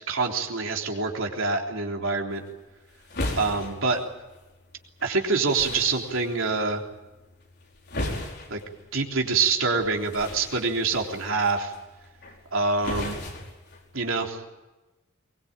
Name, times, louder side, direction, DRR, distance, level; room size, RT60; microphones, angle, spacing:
voice 1, 0.1-2.4 3.4-4.0 5.0-6.8 8.5-8.6 8.9-11.7 12.5-13.2 13.9-14.4, right 4 dB, 70° right, 2 dB, 3.6 m, -25 dB
sound 1, 2.3-14.3, left 1 dB, 50° left, 5.0 m, -38 dB
23.0 x 21.5 x 8.9 m, 1.1 s
head